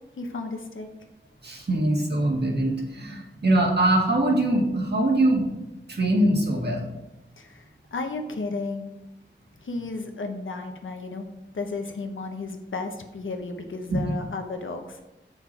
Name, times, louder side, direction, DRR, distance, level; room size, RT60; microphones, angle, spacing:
voice 1, 0.2-0.9 7.4-7.6 7.9-8.9 9.6-11.3 11.5-15.0, left 3 dB, 80° left, 4 dB, 1.0 m, -33 dB
voice 2, 1.4-5.5 5.9-6.9 13.9-14.1, right 1 dB, 55° right, -1 dB, 1.9 m, -23 dB
7.0 x 5.8 x 4.5 m, 0.95 s
wide cardioid pair, 50°, 20 cm